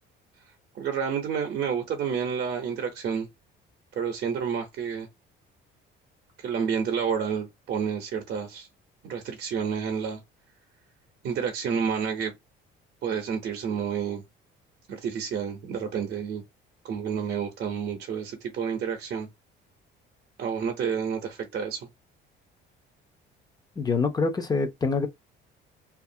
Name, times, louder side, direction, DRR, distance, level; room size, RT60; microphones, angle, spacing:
voice 1, 0.7-3.3 3.9-5.1 6.4-8.7 9.0-10.2 11.2-12.3 13.0-14.2 14.9-16.4 16.8-19.3 20.4-21.9, right 7 dB, 55° right, 0.7 m, -29 dB
voice 2, 23.8-25.1, left 4 dB, 20° left, 0.5 m, -25 dB
2.7 x 2.4 x 2.6 m
cardioid pair, 130°, 20 cm